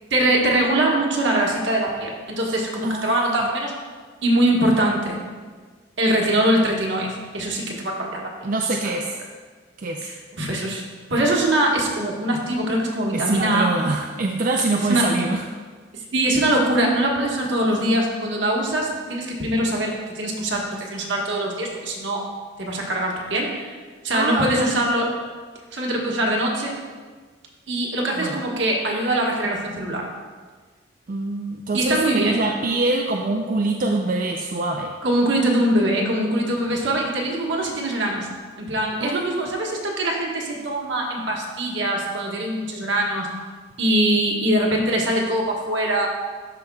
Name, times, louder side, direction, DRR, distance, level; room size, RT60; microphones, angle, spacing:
voice 1, 0.1-3.7 4.2-5.2 6.0-8.3 8.8-9.0 10.0-10.8 11.1-13.7 14.9-15.0 15.9-22.2 22.6-23.7 24.0-25.1 25.7-26.7 27.7-30.1 31.7-32.4 35.0-38.3 38.6-43.3 43.8-46.1, right 1 dB, 70° right, -1 dB, 1.3 m, -22 dB
voice 2, 2.8-3.5 8.4-9.1 9.8-10.1 13.1-15.4 24.1-24.7 28.2-28.4 31.1-34.9 39.0-39.5, right 2 dB, 45° right, 1 dB, 0.4 m, -24 dB
12.5 x 5.0 x 2.3 m, 1.5 s
head